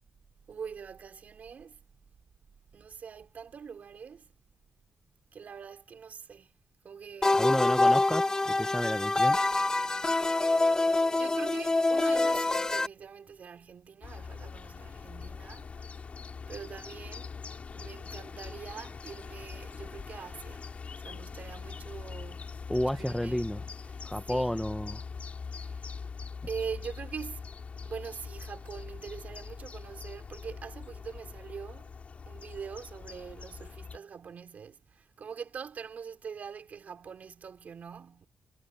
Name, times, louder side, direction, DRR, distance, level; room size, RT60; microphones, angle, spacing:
voice 1, 0.5-1.8 2.7-4.3 5.3-6.6 6.8-7.5 11.1-15.9 16.5-17.3 17.7-23.5 23.9-24.0 24.3-24.6 25.5-25.8 26.5-27.4 27.8-31.9 32.3-38.3, right 6 dB, 60° right, 4.7 m, -43 dB
sound 1, 7.2-12.9, left 2 dB, 25° left, 1.5 m, -25 dB
voice 2, 7.3-9.4 22.7-23.6 24.0-25.0, equal, 5° left, 1.0 m, -31 dB
sound 2, 14.0-34.0, left 5 dB, 50° left, 5.5 m, -43 dB
cardioid pair, 90°, 3 cm